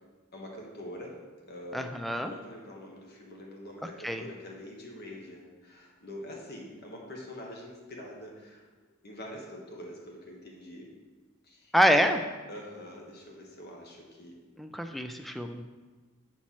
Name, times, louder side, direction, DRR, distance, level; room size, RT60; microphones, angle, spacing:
voice 1, 0.3-8.6 9.0-10.9 11.4-11.7 12.0-12.2 12.5-14.4, left 1 dB, 55° left, -1 dB, 1.3 m, -45 dB
voice 2, 1.7-2.3 4.0-4.2 11.7-12.2 14.6-15.6, equal, ahead, 6 dB, 0.3 m, -26 dB
7.3 x 4.5 x 4.2 m, 1.3 s
head